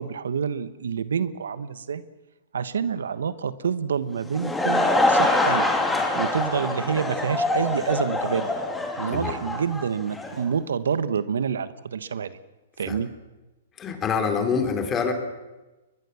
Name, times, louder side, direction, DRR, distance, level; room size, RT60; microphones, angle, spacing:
voice 1, 0.0-2.0 2.5-5.7 6.1-8.5 9.0-12.4 12.8-13.1, right 7 dB, 80° right, 14 dB, 1.3 m, -27 dB
Laughter / Crowd, 4.1-10.4, left 2 dB, 5° left, 3.2 m, -24 dB
voice 2, 13.8-15.1, left 6 dB, 20° left, 6 dB, 3.8 m, -25 dB
22.5 x 20.5 x 7.1 m, 1.1 s
hypercardioid pair, 130°, 0 cm